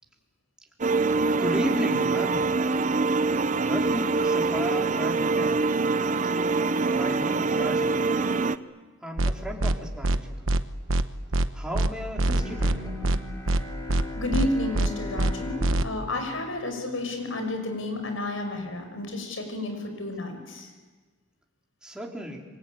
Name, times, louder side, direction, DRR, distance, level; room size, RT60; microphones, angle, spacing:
sound 1, 0.8-8.6, right 3 dB, 40° right, 0.7 m, -24 dB
voice 1, 1.4-2.8 3.7-5.6 6.9-8.0 9.0-10.4 11.5-12.9 21.8-22.4, equal, 5° right, -1 dB, 4.0 m, -34 dB
sound 2, 9.2-9.3 9.6-9.7 10.0-10.2 10.5-10.6 10.9-11.0 11.3-11.5 11.7-11.9 12.2-12.7 13.0-13.2 13.5-13.6 13.9-14.0 14.3-14.5 14.7-14.9 15.2-15.3 15.6-15.8, right 1 dB, 85° right, 1.1 m, -23 dB
Bowed string instrument, 12.4-17.4, left 3 dB, 20° left, 6.7 m, -39 dB
voice 2, 14.1-20.7, left 2 dB, 85° left, 6 dB, 6.1 m, -31 dB
27.0 x 24.5 x 8.9 m, 1.4 s
head